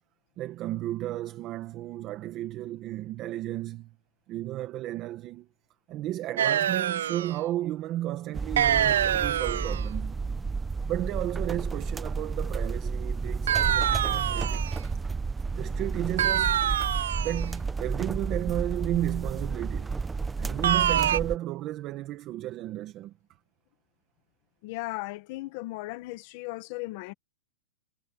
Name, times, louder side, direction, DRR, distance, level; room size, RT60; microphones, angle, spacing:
voice 1, 0.4-3.9 4.3-5.5 5.9-10.2 10.9-14.6 15.6-16.6 17.2-19.9 20.4-23.1, right 14 dB, 25° right, 1.3 m, -33 dB
sound 1, 6.4-7.4 8.6-9.9 13.5-14.8 16.2-17.5 20.6-21.2, right 10 dB, 75° right, 0.3 m, -25 dB
sound 2, 8.3-21.4, right 4 dB, 10° right, 0.8 m, -31 dB
voice 2, 24.6-27.1, left 20 dB, 40° left, 1.3 m, -36 dB
supercardioid pair, 160°, 0 cm